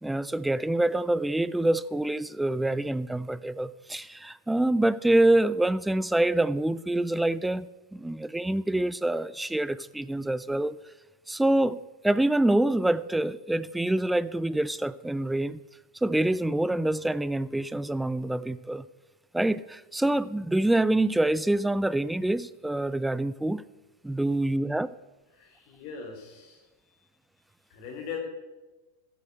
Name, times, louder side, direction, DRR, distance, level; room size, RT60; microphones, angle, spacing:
voice 1, 0.0-10.8 11.3-15.6 16.0-18.8 19.3-23.6 24.0-24.9, right 1 dB, 5° right, 17 dB, 0.4 m, -26 dB
voice 2, 25.3-26.6 27.7-28.2, left 6 dB, 45° left, 2 dB, 3.2 m, -40 dB
14.0 x 8.6 x 6.3 m, 1.1 s
figure-of-eight pair, 90°, 0 cm